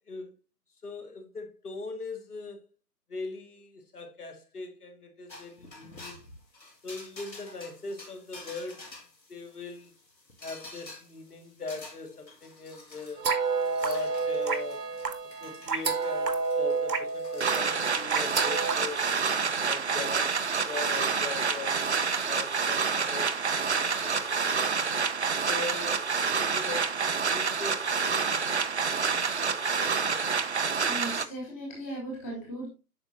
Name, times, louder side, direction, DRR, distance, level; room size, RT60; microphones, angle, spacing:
voice 1, 0.8-2.6 3.1-6.2 6.8-9.0 9.3-9.9 10.4-13.3 13.8-14.9 15.4-19.0 19.6-23.4 23.8-24.8 25.4-26.1 26.3-30.9, left 3 dB, 65° left, 1.9 m, -41 dB
sound 1, 5.3-25.1, left 2 dB, 85° left, 2.1 m, -51 dB
sound 2, 13.2-18.8, right 4 dB, 70° right, 1.2 m, -29 dB
sound 3, 17.4-31.2, right 5 dB, 45° right, 0.5 m, -28 dB
voice 2, 30.8-32.7, right 1 dB, 10° left, 0.9 m, -37 dB
8.7 x 5.9 x 2.6 m
figure-of-eight pair, 145°, 50 cm